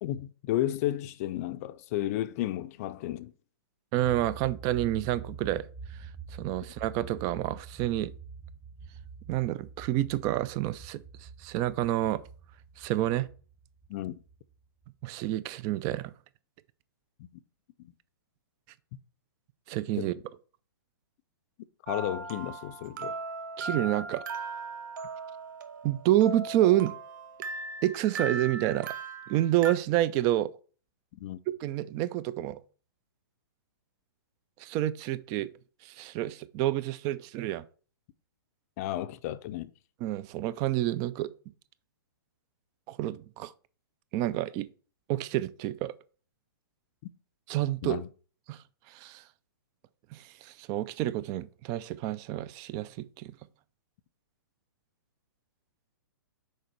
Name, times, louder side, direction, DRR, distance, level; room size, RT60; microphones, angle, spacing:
voice 1, 0.0-3.3 13.9-14.2 17.2-17.3 17.8-17.9 20.0-20.2 21.9-23.2 31.2-31.4 38.8-39.7 47.8-48.1, left 13 dB, 40° left, 0.5 m, -33 dB
voice 2, 3.9-8.1 9.3-12.2 12.8-13.3 15.0-16.1 19.7-20.1 23.6-24.2 25.8-26.9 27.8-28.9 29.3-30.5 31.6-32.6 34.6-35.5 35.8-37.6 40.0-41.3 42.9-43.5 44.1-44.7 45.1-46.0 47.5-48.0 48.5-49.3 50.1-53.3, right 14 dB, 30° right, 0.4 m, -29 dB
sound 1, 4.0-15.3, right 5 dB, 15° right, 0.8 m, -46 dB
sound 2, 21.9-29.7, right 3 dB, 60° right, 1.0 m, -38 dB
6.5 x 5.0 x 4.5 m
hypercardioid pair, 130°, 12 cm